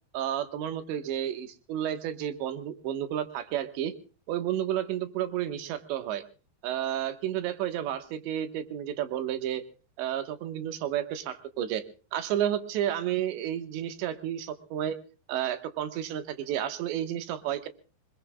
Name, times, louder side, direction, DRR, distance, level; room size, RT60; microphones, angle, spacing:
voice 1, 0.1-3.9 4.3-6.2 6.6-9.6 10.0-11.8 12.1-15.0 15.3-17.7, right 11 dB, 80° right, 10 dB, 3.6 m, -31 dB
25.5 x 21.0 x 2.3 m, 0.35 s
omnidirectional pair, 5.1 m